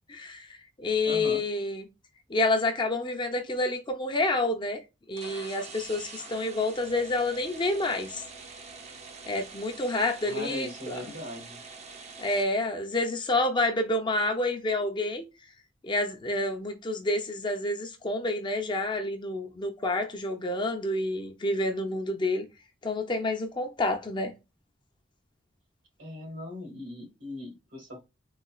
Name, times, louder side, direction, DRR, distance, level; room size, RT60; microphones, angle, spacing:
voice 1, 0.1-1.8 2.3-4.8 5.1-8.2 9.3-11.0 12.2-15.3 15.8-22.5 22.8-24.3, left 2 dB, 25° left, 0.5 m, -28 dB
voice 2, 1.0-1.4 10.2-11.6 26.0-28.0, left 1 dB, 85° right, 1.7 m, -39 dB
sound 1, 5.1-12.4, right 4 dB, 35° right, 0.5 m, -45 dB
4.0 x 2.3 x 2.3 m
head